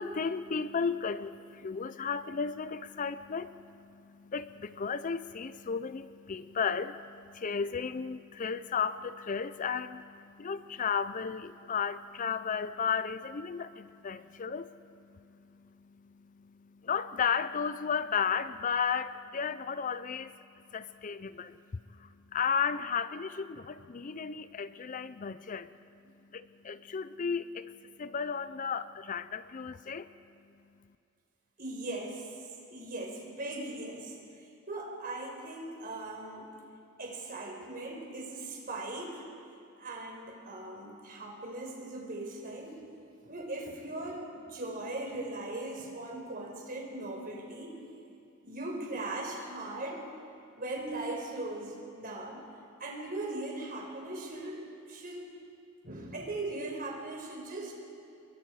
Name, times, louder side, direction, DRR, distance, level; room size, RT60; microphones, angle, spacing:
voice 1, 0.0-20.4 20.7-25.7 26.3-30.1, left 6 dB, 40° left, 14 dB, 0.5 m, -34 dB
voice 2, 31.6-32.3 32.7-34.1 34.7-36.5 37.0-39.2 39.8-42.8 43.2-47.8 48.4-50.0 50.5-52.4 52.8-54.6 54.9-55.2 55.8-57.7, right 2 dB, 45° right, 0 dB, 4.7 m, -39 dB
28.5 x 22.0 x 4.8 m, 2.6 s
head